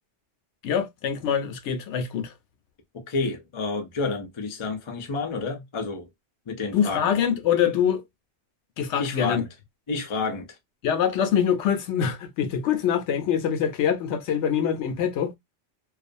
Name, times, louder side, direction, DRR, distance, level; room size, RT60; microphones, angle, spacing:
voice 1, 0.6-2.3 6.7-8.0 8.8-9.4 10.8-15.3, left 8 dB, 75° left, 0.9 m, -24 dB
voice 2, 2.9-6.1 6.5-7.1 9.0-9.5 9.9-10.6, left 4 dB, 45° left, 0.4 m, -30 dB
2.4 x 2.4 x 2.5 m
omnidirectional pair, 1.2 m